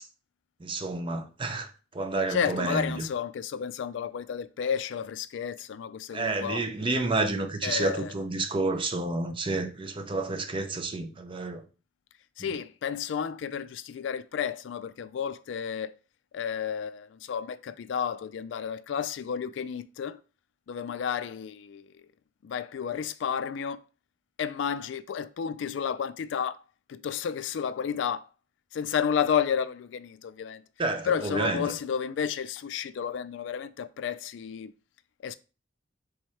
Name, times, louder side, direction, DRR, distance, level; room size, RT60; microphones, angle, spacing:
voice 1, 0.6-3.1 6.1-11.6 30.8-31.7, right 3 dB, 25° right, 0.5 m, -30 dB
voice 2, 2.3-6.7 7.6-8.1 12.4-15.9 16.3-20.2 20.7-22.0 22.4-23.8 24.4-26.6 26.9-28.2 28.7-30.6 31.1-34.7 35.2-35.4, left 7 dB, 70° left, 0.3 m, -31 dB
3.5 x 3.2 x 4.4 m
head